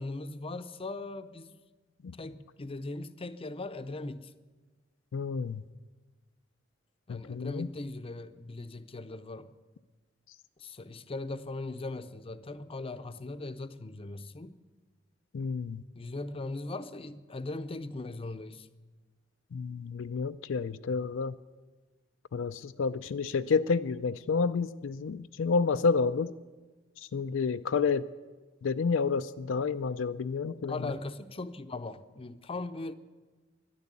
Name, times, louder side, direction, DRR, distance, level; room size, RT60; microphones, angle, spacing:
voice 1, 0.0-1.6 2.2-4.3 7.1-9.5 10.6-14.6 15.9-18.7 30.7-32.9, left 2 dB, 30° left, 0.6 m, -39 dB
voice 2, 5.1-5.6 7.1-7.7 15.3-15.8 19.5-21.3 22.3-26.3 27.0-28.1 28.6-30.8, left 5 dB, 90° left, 0.4 m, -30 dB
11.0 x 11.0 x 9.6 m
head